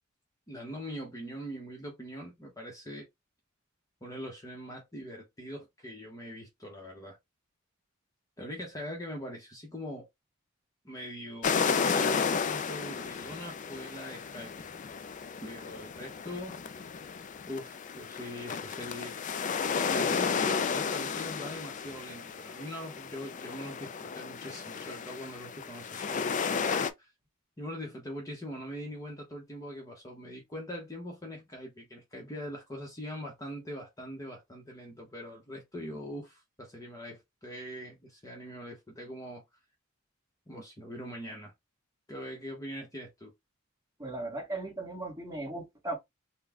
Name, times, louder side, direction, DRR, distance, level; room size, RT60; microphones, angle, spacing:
voice 1, 0.5-3.1 4.0-7.2 8.4-10.1 10.8-14.7 15.4-16.6 17.5-19.1 19.9-27.1 27.6-39.4 40.5-41.5 42.1-43.3, equal, 15° left, 0.9 m, -42 dB
sound 1, 11.4-26.9, left 6 dB, 35° left, 0.4 m, -33 dB
voice 2, 44.0-46.0, right 2 dB, 15° right, 1.6 m, -37 dB
3.9 x 2.2 x 3.5 m
head